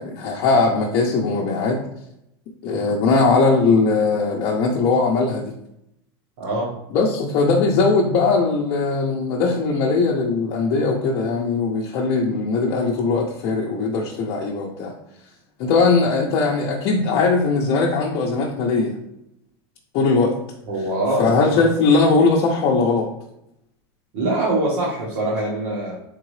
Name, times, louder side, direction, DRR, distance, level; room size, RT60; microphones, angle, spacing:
voice 1, 0.0-1.8 2.6-5.5 6.9-14.9 15.6-19.0 19.9-20.3 21.2-23.1, left 4 dB, 50° left, -2 dB, 0.7 m, -19 dB
voice 2, 6.4-6.7 20.7-21.3 24.1-26.0, right 2 dB, 55° right, -6 dB, 1.4 m, -23 dB
3.7 x 3.7 x 3.2 m, 0.79 s
supercardioid pair, 135°, 13 cm